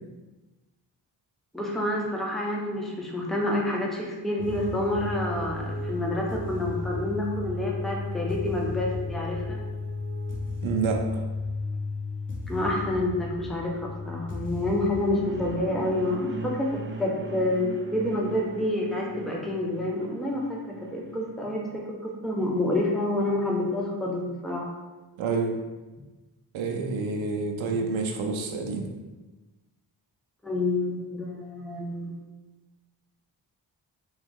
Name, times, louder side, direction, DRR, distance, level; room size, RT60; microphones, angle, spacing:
voice 1, 1.5-9.6 12.5-24.7 30.4-32.1, left 1 dB, ahead, -1 dB, 0.8 m, -28 dB
sound 1, 4.4-15.9, left 2 dB, 25° left, 1.0 m, -34 dB
voice 2, 10.6-11.0 25.2-25.6 26.5-28.9, right 4 dB, 80° right, 3 dB, 0.6 m, -28 dB
sound 2, 14.7-21.4, right 3 dB, 25° right, 0.4 m, -40 dB
3.2 x 3.0 x 3.6 m, 1.2 s
supercardioid pair, 40°, 47 cm